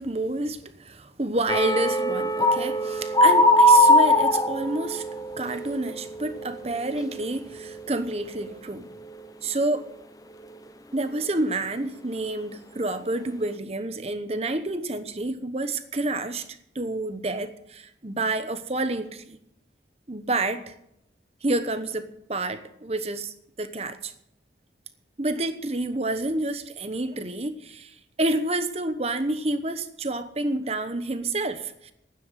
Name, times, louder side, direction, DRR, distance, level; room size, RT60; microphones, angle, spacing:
voice 1, 0.0-5.1 5.4-8.9 9.4-9.9 10.9-19.4 20.1-20.7 21.4-24.1 25.2-31.9, right 2 dB, 35° right, 1.0 m, -29 dB
sound 1, 1.5-7.3 7.5-7.9 8.3-8.5, left 1 dB, 20° left, 0.7 m, -21 dB
11.5 x 9.7 x 9.0 m
head